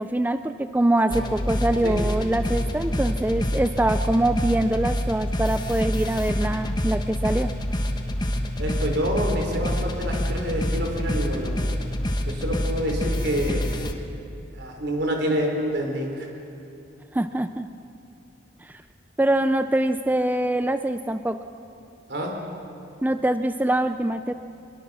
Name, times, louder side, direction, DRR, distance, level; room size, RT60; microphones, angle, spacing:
voice 1, 0.0-7.5 17.1-17.7 18.6-18.8 19.2-21.4 23.0-24.3, right 1 dB, 10° right, 10 dB, 0.4 m, -24 dB
sound 1, 1.1-13.9, equal, 25° left, 1.3 m, -27 dB
voice 2, 8.6-11.6 12.3-13.7 14.5-16.3 22.1-22.4, equal, 65° right, 1 dB, 4.0 m, -27 dB
23.0 x 22.0 x 6.2 m, 2.8 s
head